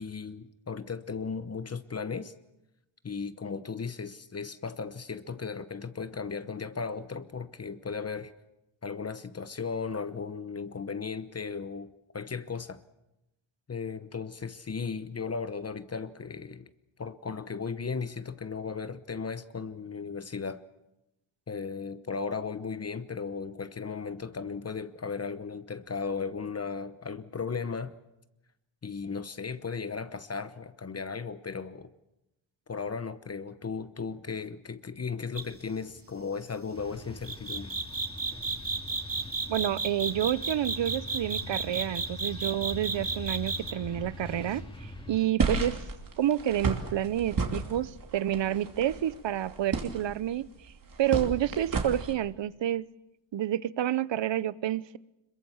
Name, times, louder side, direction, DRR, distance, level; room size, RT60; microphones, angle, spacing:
voice 1, 0.0-2.3 3.0-8.3 8.8-11.9 12.1-12.8 13.7-16.7 17.0-20.6 21.5-27.9 28.8-31.9 32.7-37.8, left 5 dB, 35° left, 1.0 m, -36 dB
sound 1, 35.4-35.6 37.2-43.7, right 4 dB, 30° right, 2.7 m, -32 dB
sound 2, 36.7-45.3, left 1 dB, 10° left, 3.2 m, -43 dB
voice 2, 39.5-45.8 46.2-50.7 51.0-52.9 53.3-55.0, right 11 dB, 70° right, 0.8 m, -29 dB
sound 3, 45.4-52.1, right 4 dB, 45° right, 3.0 m, -33 dB
26.0 x 22.5 x 7.2 m
wide cardioid pair, 140°, 45 cm